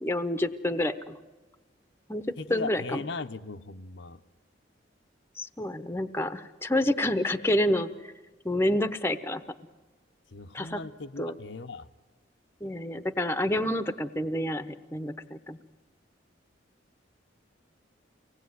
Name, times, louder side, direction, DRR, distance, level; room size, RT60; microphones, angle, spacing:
voice 1, 0.0-1.2 2.1-2.2 2.5-3.0 5.4-8.1 8.4-9.4 10.5-10.8 11.2-11.3 12.6-15.6, left 1 dB, 15° left, 11 dB, 0.9 m, -28 dB
voice 2, 2.4-4.2 10.3-11.9, left 3 dB, 70° left, 8 dB, 0.8 m, -38 dB
24.5 x 18.5 x 9.4 m, 1.2 s
head